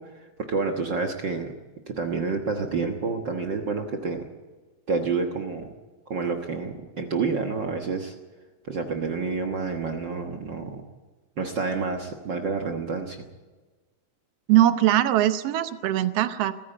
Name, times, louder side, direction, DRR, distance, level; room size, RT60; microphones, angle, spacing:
voice 1, 0.0-1.5 1.9-4.3 4.9-5.7 6.1-8.1 8.7-10.8 11.4-13.2, right 4 dB, 50° right, 4 dB, 1.4 m, -29 dB
voice 2, 14.5-16.5, right 13 dB, 70° right, 12 dB, 1.6 m, -21 dB
20.0 x 14.5 x 9.0 m, 1.3 s
omnidirectional pair, 3.6 m